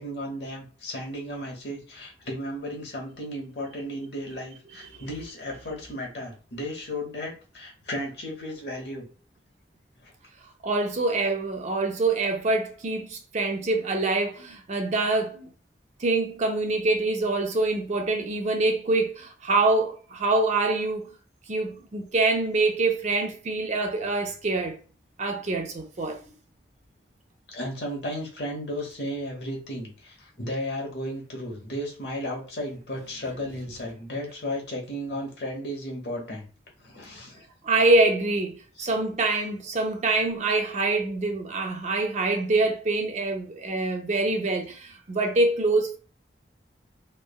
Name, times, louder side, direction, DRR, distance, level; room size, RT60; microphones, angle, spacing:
voice 1, 0.0-9.1 10.0-10.1 27.5-36.4 36.8-37.4 38.8-38.9, equal, 65° left, 0.9 m, -34 dB
voice 2, 10.6-15.5 16.0-21.1 21.5-24.8 25.2-26.2 37.6-46.0, right 2 dB, 40° right, 0.5 m, -25 dB
3.1 x 2.2 x 2.2 m
head